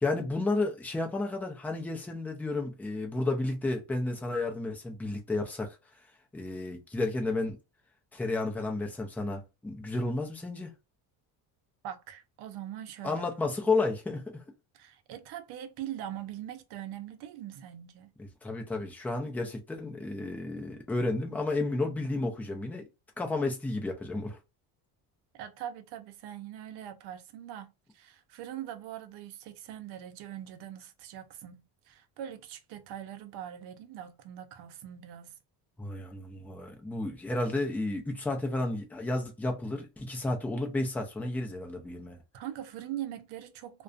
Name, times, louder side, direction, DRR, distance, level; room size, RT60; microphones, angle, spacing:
voice 1, 0.0-5.8 6.3-7.6 8.1-10.7 13.0-14.4 18.2-22.9 23.2-24.4 35.8-42.2, left 2 dB, 5° left, 0.4 m, -32 dB
voice 2, 11.8-13.4 14.7-18.1 25.3-35.4 42.3-43.8, right 11 dB, 70° right, 0.6 m, -42 dB
2.4 x 2.2 x 2.4 m
cardioid pair, 115°, 41 cm